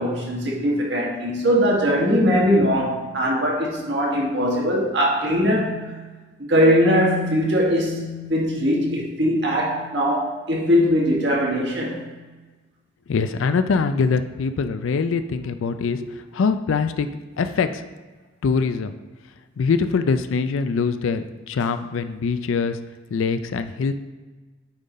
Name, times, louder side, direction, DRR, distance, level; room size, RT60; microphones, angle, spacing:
voice 1, 0.0-5.9 6.4-12.1, equal, 60° right, -3 dB, 1.7 m, -21 dB
voice 2, 13.1-16.0 16.3-17.1 17.4-17.8 18.4-18.9 19.6-22.8 23.1-23.9, left 5 dB, 85° left, 10 dB, 0.4 m, -23 dB
8.8 x 3.8 x 4.1 m, 1.3 s
head